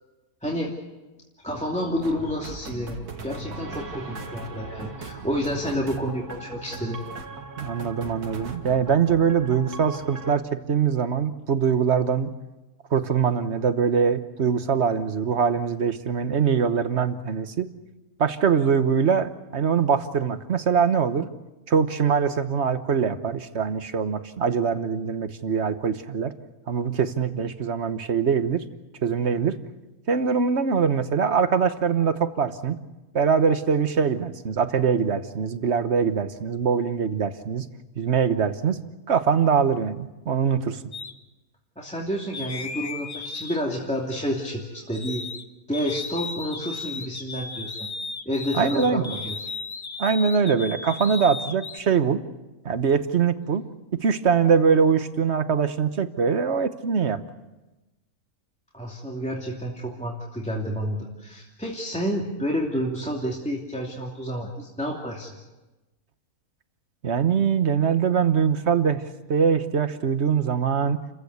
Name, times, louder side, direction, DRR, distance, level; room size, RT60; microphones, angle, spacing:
voice 1, 0.4-0.7 1.4-7.0 41.8-45.2 45.7-47.9 48.2-49.4 58.7-65.4, equal, 5° left, -2 dB, 2.6 m, -29 dB
sound 1, 2.0-10.4, right 3 dB, 90° right, 2.3 m, -38 dB
voice 2, 7.6-12.3 12.9-17.7 18.2-21.3 21.7-26.3 26.7-28.6 29.0-29.6 30.1-32.8 33.1-37.6 38.0-38.8 39.1-40.8 48.5-49.0 50.0-52.2 52.6-53.6 53.9-57.2 67.0-69.0 69.3-71.0, right 6 dB, 50° right, 10 dB, 1.3 m, -23 dB
sound 2, 40.9-41.1 42.3-45.4 45.7-51.8, left 4 dB, 30° left, 0.8 m, -36 dB
29.5 x 15.0 x 8.2 m, 1.1 s
omnidirectional pair, 1.6 m